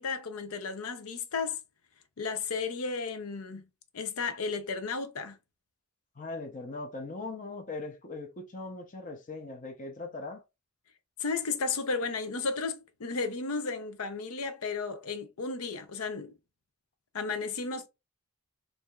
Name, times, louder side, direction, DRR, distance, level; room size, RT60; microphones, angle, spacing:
voice 1, 0.0-1.6 2.2-3.6 3.9-5.4 11.2-16.4 17.1-17.9, left 4 dB, 85° left, 0.6 m, -33 dB
voice 2, 6.2-10.4, left 3 dB, 35° left, 0.7 m, -40 dB
4.7 x 2.7 x 2.3 m
head